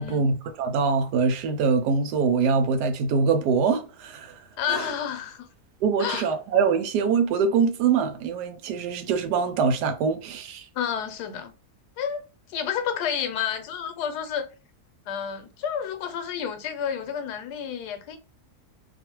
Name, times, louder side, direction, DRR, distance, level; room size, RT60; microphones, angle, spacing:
voice 1, 0.0-4.4 4.7-4.9 5.8-10.7, right 5 dB, 85° right, 1.2 m, -24 dB
voice 2, 4.6-5.5 6.0-6.3 10.7-11.5 12.0-12.2 12.5-14.5 15.1-18.2, left 8 dB, 85° left, 1.2 m, -30 dB
2.7 x 2.4 x 2.9 m
omnidirectional pair, 1.7 m